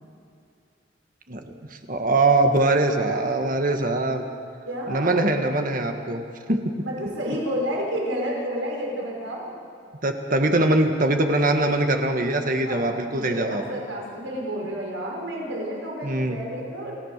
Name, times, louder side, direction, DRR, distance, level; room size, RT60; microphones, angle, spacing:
voice 1, 1.7-4.2 4.9-6.2 6.5-6.7 7.0-7.1 10.0-13.8 16.0-16.4, right 2 dB, 45° right, 5 dB, 1.7 m, -22 dB
voice 2, 4.6-5.2 6.8-9.5 12.4-17.0, equal, 85° right, -2 dB, 5.7 m, -30 dB
29.0 x 16.5 x 6.7 m, 2.5 s
head